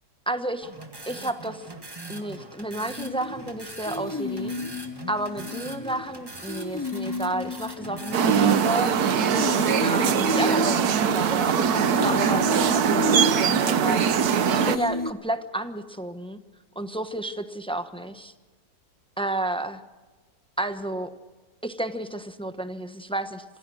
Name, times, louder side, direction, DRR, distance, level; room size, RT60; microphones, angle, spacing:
voice 1, 0.3-0.7 1.1-1.7 2.1-4.5 5.1-8.9 9.8-14.1 14.5-16.4 16.7-18.3 19.2-19.8 20.6-21.1 21.6-23.4, right 1 dB, 5° left, 9 dB, 0.8 m, -31 dB
sound 1, 0.6-10.5, right 2 dB, 15° right, 1.7 m, -41 dB
sound 2, 3.0-15.1, left 2 dB, 25° left, 0.4 m, -32 dB
sound 3, 8.1-14.8, right 7 dB, 60° right, 1.4 m, -22 dB
27.0 x 16.5 x 6.3 m, 1.3 s
omnidirectional pair, 1.9 m